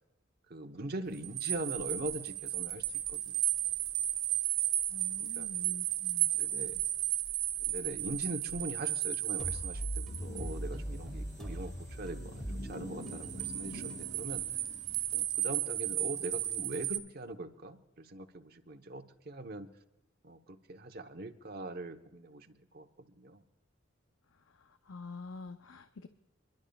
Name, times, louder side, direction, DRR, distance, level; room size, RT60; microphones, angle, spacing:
voice 1, 0.5-3.4 5.2-5.5 6.4-6.8 7.6-14.4 15.1-19.7 20.2-23.4, right 2 dB, 50° right, 5 dB, 1.0 m, -42 dB
sound 1, 1.2-10.5 13.0-17.0, right 14 dB, 90° right, 1.4 m, -34 dB
voice 2, 4.9-6.8 24.3-26.1, left 3 dB, 75° left, 9 dB, 0.6 m, -48 dB
sound 2, 9.4-15.0, equal, ahead, 2.2 m, -41 dB
sound 3, 10.0-15.2, left 1 dB, 60° left, 4.2 m, -48 dB
28.5 x 12.0 x 2.4 m, 0.94 s
head